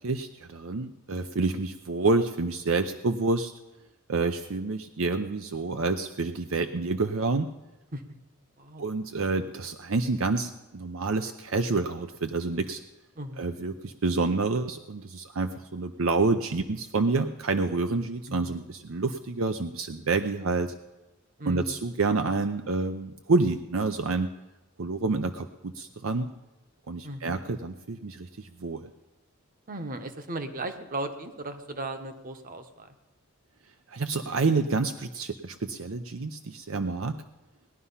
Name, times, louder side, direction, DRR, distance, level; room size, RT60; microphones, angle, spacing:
voice 1, 0.0-3.5 4.1-7.5 8.8-12.8 13.4-20.7 21.5-24.3 24.8-26.3 26.9-28.9 33.9-37.2, right 3 dB, 70° right, 8 dB, 0.6 m, -28 dB
voice 2, 13.2-13.5 18.3-18.6 21.4-21.8 27.0-27.4 29.7-32.9, right 2 dB, 40° right, 8 dB, 1.2 m, -36 dB
19.0 x 11.0 x 5.6 m, 1.0 s
head